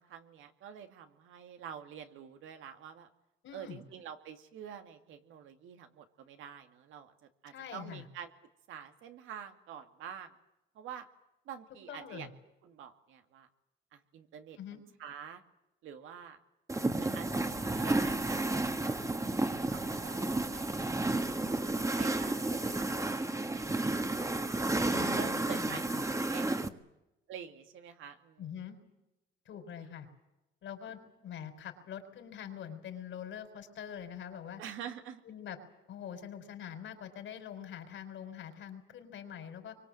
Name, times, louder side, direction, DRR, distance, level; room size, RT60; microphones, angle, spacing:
voice 1, 0.0-3.1 3.5-7.1 7.4-8.3 8.7-10.3 10.8-11.1 11.5-12.3 12.6-13.5 13.9-14.6 15.0-15.4 15.8-16.4 17.0-20.8 21.9-24.0 24.9-25.9 26.3-26.8 27.3-28.4 29.8-29.9 34.6-35.2, right 8 dB, 85° right, 7 dB, 2.3 m, -47 dB
voice 2, 3.4-3.8 7.5-8.1 11.9-12.3 14.6-14.8 24.9-26.0 28.4-28.8 29.4-30.1 30.6-34.6 35.2-35.6 35.9-39.7, left 9 dB, 75° left, 7 dB, 4.8 m, -44 dB
sound 1, 16.7-26.7, right 2 dB, 15° right, 1.6 m, -32 dB
26.0 x 24.0 x 7.7 m, 0.95 s
cardioid pair, 90°, 20 cm